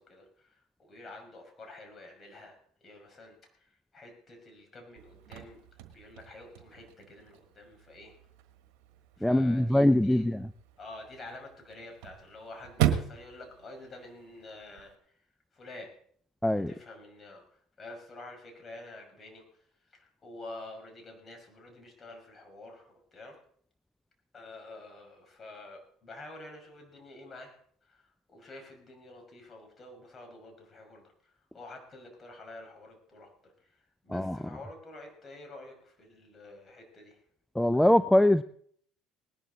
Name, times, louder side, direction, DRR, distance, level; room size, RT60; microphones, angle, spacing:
voice 1, 0.0-5.6 5.9-8.2 9.2-10.3 10.8-15.3 15.5-15.9 16.7-23.4 24.3-27.6 27.8-37.2, left 2 dB, 35° left, 3 dB, 5.7 m, -49 dB
Chirp tweet / Car / Slam, 5.0-14.9, right 11 dB, 70° right, 1.4 m, -37 dB
voice 2, 9.2-10.4 16.4-16.7 34.1-34.4 37.6-38.4, left 1 dB, 5° left, 14 dB, 0.5 m, -23 dB
19.0 x 11.5 x 4.1 m, 0.62 s
hypercardioid pair, 70°, 0 cm